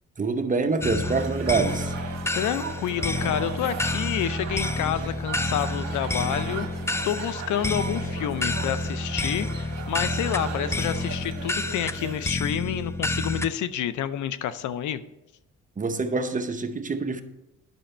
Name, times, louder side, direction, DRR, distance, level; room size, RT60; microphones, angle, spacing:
voice 1, 0.2-1.9 15.8-17.2, right 4 dB, 25° right, 0.8 m, -26 dB
sound 1, 0.8-13.5, left 2 dB, 10° left, 0.4 m, -29 dB
sound 2, 1.0-12.3, right 6 dB, 60° right, 1.6 m, -37 dB
voice 2, 2.3-6.7 7.0-15.0, left 10 dB, 75° left, 0.6 m, -29 dB
10.5 x 6.4 x 4.4 m
cardioid pair, 90°, 30 cm